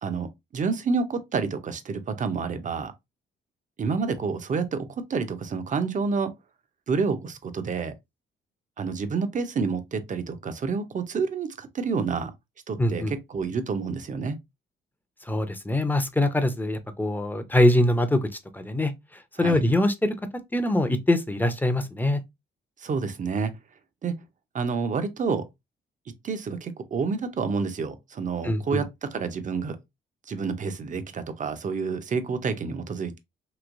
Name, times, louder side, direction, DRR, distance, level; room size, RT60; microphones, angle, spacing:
voice 1, 0.0-2.9 3.8-6.3 6.9-7.9 8.8-12.3 12.7-14.4 19.4-19.6 22.8-23.5 24.0-24.2 24.5-25.5 26.2-29.8 30.3-33.2, right 5 dB, 40° right, 0.6 m, -29 dB
voice 2, 12.8-13.1 15.2-20.1 20.5-22.2 28.4-28.8, left 1 dB, 10° left, 0.6 m, -23 dB
3.1 x 2.8 x 2.5 m
cardioid pair, 90°, 20 cm